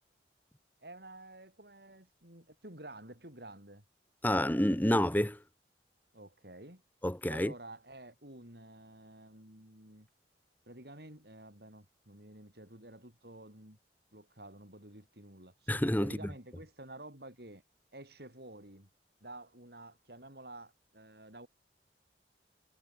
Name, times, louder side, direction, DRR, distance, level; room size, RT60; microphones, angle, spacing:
voice 1, 0.8-3.8 6.1-6.8 7.3-10.1 10.7-13.8 14.1-15.7 16.0-17.6 17.9-18.9 19.2-21.5, right 1 dB, 60° right, 6.6 m, -51 dB
voice 2, 4.2-5.4 7.0-7.5 15.7-16.1, left 1 dB, 10° left, 1.2 m, -28 dB
head